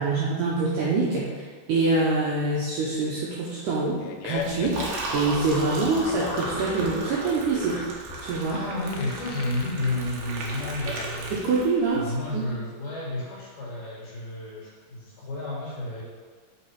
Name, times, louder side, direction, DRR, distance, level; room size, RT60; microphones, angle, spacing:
voice 1, 0.0-4.8 5.1-7.9 8.2-8.6 11.3-12.5, right 3 dB, 85° right, -5 dB, 1.8 m, -25 dB
Fart, 3.7-11.7, left 7 dB, 85° left, 2.1 m, -38 dB
Liquid, 4.4-12.0, right 2 dB, 70° right, 2.6 m, -35 dB
voice 2, 8.5-11.3 11.9-16.0, left 2 dB, 60° left, -5 dB, 2.5 m, -31 dB
8.0 x 3.9 x 4.5 m, 1.5 s
omnidirectional pair, 4.6 m